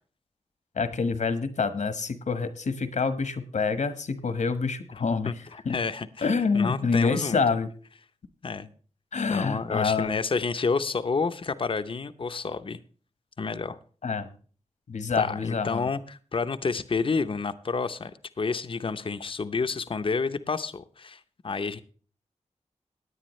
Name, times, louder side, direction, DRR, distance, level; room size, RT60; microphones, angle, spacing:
voice 1, 0.7-5.3 5.6-5.8 6.2-7.7 9.1-10.1 14.0-14.3 14.9-15.8, left 4 dB, 75° left, 11 dB, 1.3 m, -27 dB
voice 2, 5.2-6.3 6.5-7.4 8.4-8.7 9.3-12.8 13.4-13.8 15.2-18.1 18.4-21.8, left 4 dB, 45° left, 11 dB, 0.7 m, -29 dB
18.0 x 9.7 x 3.1 m, 0.41 s
wide cardioid pair, 115°, 12 cm